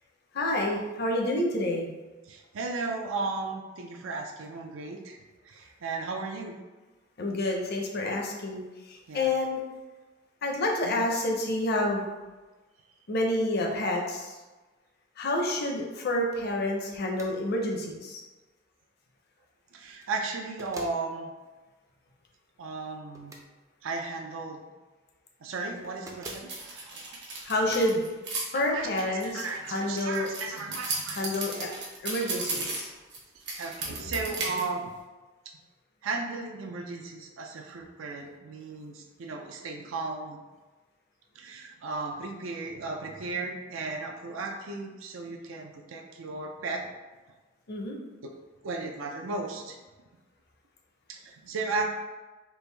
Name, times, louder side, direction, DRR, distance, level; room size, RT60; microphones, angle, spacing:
voice 1, 0.3-1.9 7.2-9.6 10.4-12.0 13.1-14.3 15.2-18.2 27.4-28.1 28.5-30.3 31.1-31.7 32.0-32.9 47.7-48.0, left 1 dB, 55° left, 1 dB, 0.6 m, -28 dB
voice 2, 2.3-5.2 5.4-6.6 9.1-9.3 10.8-11.0 19.7-21.3 22.6-23.3 23.8-24.6 25.4-27.2 28.5-31.2 33.6-34.9 36.0-40.4 41.4-46.9 48.6-49.8 51.1-51.9, right 3 dB, 80° right, 2 dB, 0.4 m, -35 dB
sound 1, 17.1-17.4 17.7-17.8 19.8-20.1 20.6-21.0 23.1-23.5 25.8-26.5 27.7-28.0, right 1 dB, 15° right, 0.4 m, -45 dB
sound 2, 26.3-28.4 29.0-33.2 33.5-34.6, right 3 dB, 60° right, 0.9 m, -34 dB
3.3 x 2.5 x 3.3 m, 1.2 s
head